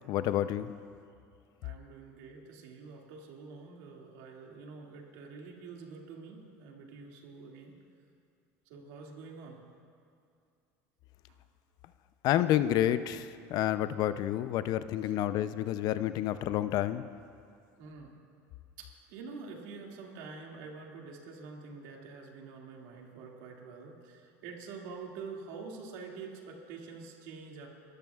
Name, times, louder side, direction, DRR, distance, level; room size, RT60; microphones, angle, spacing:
voice 1, 0.1-0.7 12.2-17.1, left 12 dB, 60° left, 13 dB, 0.5 m, -29 dB
voice 2, 1.6-7.8 8.7-9.6 11.3-11.4 15.0-15.1 17.8-18.1 18.8-27.7, right 4 dB, 80° right, 0 dB, 2.2 m, -46 dB
29.0 x 13.5 x 2.4 m, 2.4 s
supercardioid pair, 105°, 8 cm